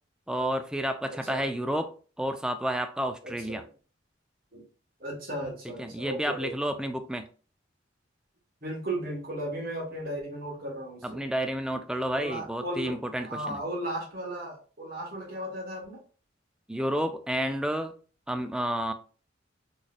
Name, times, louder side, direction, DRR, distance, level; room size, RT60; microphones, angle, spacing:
voice 1, 0.3-3.6 5.6-7.3 11.0-13.6 16.7-17.9 18.3-18.9, equal, 5° right, 0.3 m, -30 dB
voice 2, 3.2-3.6 4.5-4.7 5.0-6.8 8.6-11.2 12.2-12.9 13.2-16.0, right 1 dB, 50° right, 1.5 m, -35 dB
4.1 x 3.1 x 2.4 m
head